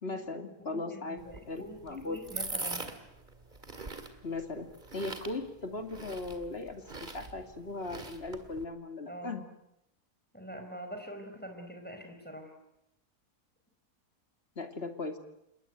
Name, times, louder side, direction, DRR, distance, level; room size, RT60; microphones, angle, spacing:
voice 1, 0.0-1.2 1.5-2.2 4.2-9.4 14.6-15.2, left 3 dB, 40° left, 6 dB, 2.7 m, -38 dB
voice 2, 0.6-1.8 2.0-2.9 9.1-9.4 10.3-12.5, equal, 5° left, 4 dB, 5.0 m, -44 dB
sound 1, 1.2-8.6, right 3 dB, 30° right, 2.4 m, -43 dB
27.5 x 21.0 x 9.2 m, 0.83 s
omnidirectional pair, 1.6 m